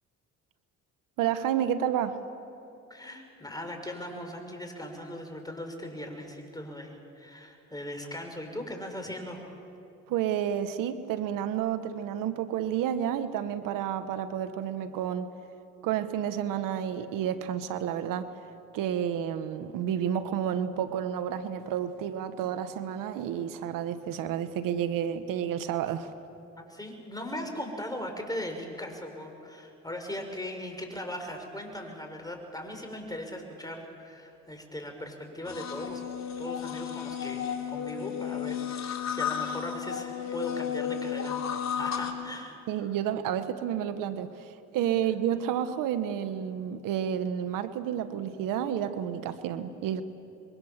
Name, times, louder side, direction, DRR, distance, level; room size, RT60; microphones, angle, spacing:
voice 1, 1.2-2.2 10.1-15.3 15.8-18.3 18.7-26.1 42.7-50.0, right 9 dB, 80° right, 11 dB, 1.2 m, -30 dB
voice 2, 2.9-9.5 26.6-36.0 36.4-42.6, left 1 dB, 10° left, 4 dB, 6.2 m, -39 dB
sound 1, 35.4-42.1, left 8 dB, 55° left, 3.4 m, -33 dB
27.5 x 23.0 x 7.4 m, 2.7 s
supercardioid pair, 65°, 32 cm